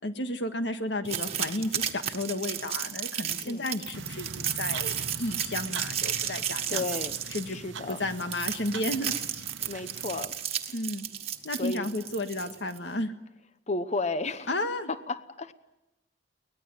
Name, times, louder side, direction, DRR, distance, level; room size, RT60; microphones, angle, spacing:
voice 1, 0.0-7.0 7.3-7.6 7.9-9.1 10.7-11.1 11.4-13.1 14.5-14.9, left 1 dB, 65° left, 8 dB, 1.8 m, -32 dB
sound 1, 1.0-12.8, right 9 dB, 35° right, 1.6 m, -33 dB
sound 2, 3.9-10.2, right 4 dB, 80° right, 1.0 m, -42 dB
voice 2, 6.7-7.2 7.5-8.0 9.6-10.3 11.6-11.9 13.7-14.5 14.9-15.5, left 3 dB, 35° left, 13 dB, 1.0 m, -33 dB
24.0 x 19.5 x 9.2 m, 0.97 s
head